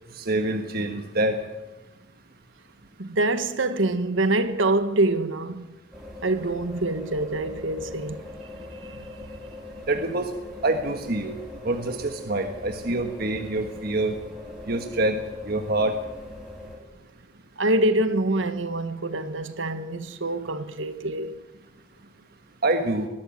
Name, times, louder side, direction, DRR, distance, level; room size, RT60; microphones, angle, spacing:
voice 1, 0.2-1.4 9.9-10.3 10.6-11.3 11.6-14.1 14.7-15.2 15.5-15.9 22.6-23.1, right 2 dB, 50° right, 1.5 m, -26 dB
voice 2, 3.0-5.7 6.2-8.2 8.7-9.3 17.6-21.4, right 2 dB, 70° right, 1.5 m, -25 dB
sound 1, 5.9-16.8, left 2 dB, 5° right, 4.2 m, -41 dB
20.0 x 14.0 x 9.4 m
head